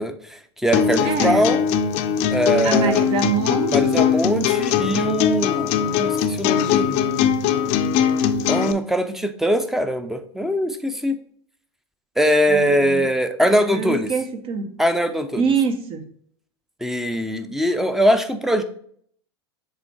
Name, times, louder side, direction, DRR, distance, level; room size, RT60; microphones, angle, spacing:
voice 1, 0.0-1.6 2.3-3.0 3.7-7.0 8.5-11.2 12.2-14.1 14.8-15.4 16.8-18.6, equal, 5° right, 0.7 m, -22 dB
sound 1, 0.7-8.7, left 8 dB, 50° left, 0.6 m, -20 dB
voice 2, 1.0-1.6 2.6-4.1 12.5-13.0 13.4-14.8 15.4-16.1, right 5 dB, 40° right, 1.1 m, -25 dB
7.5 x 3.5 x 4.2 m
hypercardioid pair, 95°, 14 cm